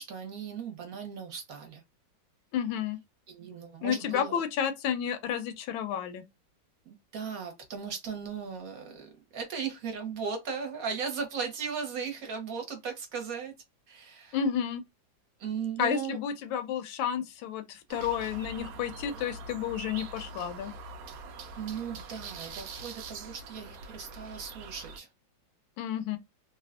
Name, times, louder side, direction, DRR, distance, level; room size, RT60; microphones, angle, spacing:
voice 1, 0.0-1.8 3.3-4.4 6.8-13.5 13.9-14.4 15.4-16.2 21.6-25.1, right 6 dB, 55° right, 1.1 m, -37 dB
voice 2, 2.5-3.0 3.8-6.2 14.3-14.8 15.8-20.7 25.8-26.2, left 8 dB, 85° left, 1.4 m, -31 dB
sound 1, 17.9-25.0, right 3 dB, 85° right, 0.7 m, -44 dB
3.4 x 2.3 x 2.3 m
omnidirectional pair, 2.1 m